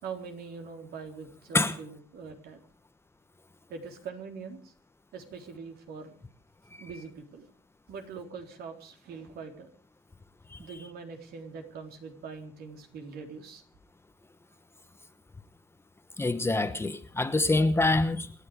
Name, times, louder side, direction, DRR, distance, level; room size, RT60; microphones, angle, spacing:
voice 1, 0.0-2.6 3.7-4.7 5.1-6.2 6.8-7.5 7.9-9.7 10.6-13.6, right 5 dB, 70° right, 4.0 m, -43 dB
voice 2, 16.2-18.3, left 2 dB, 15° left, 1.1 m, -25 dB
27.5 x 10.5 x 5.1 m
cardioid pair, 110°, 17 cm